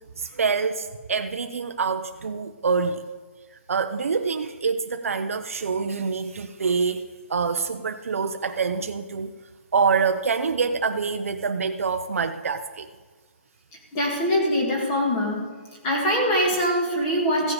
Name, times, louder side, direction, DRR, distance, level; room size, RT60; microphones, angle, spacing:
voice 1, 0.2-3.0 3.7-7.0 7.3-9.3 9.7-12.9, right 5 dB, 90° right, 7 dB, 0.7 m, -26 dB
voice 2, 13.9-15.5 15.8-17.5, equal, 20° left, 0 dB, 1.8 m, -23 dB
15.5 x 7.4 x 4.9 m, 1.3 s
hypercardioid pair, 170°, 7 cm